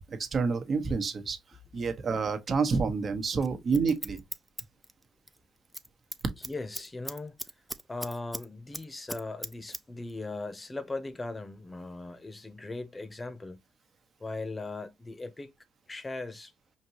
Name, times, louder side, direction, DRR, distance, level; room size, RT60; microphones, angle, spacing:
voice 1, 0.1-1.4 1.7-4.2, right 4 dB, 45° right, 1.1 m, -28 dB
Scissors, 3.4-5.4 5.6-5.9 6.1-8.4 8.7-9.8 10.1-10.2, right 1 dB, 5° right, 0.6 m, -39 dB
voice 2, 6.4-7.4 7.9-13.6 14.2-15.5 15.9-16.5, left 2 dB, 25° left, 0.9 m, -39 dB
5.1 x 2.7 x 2.9 m
supercardioid pair, 75°, 0 cm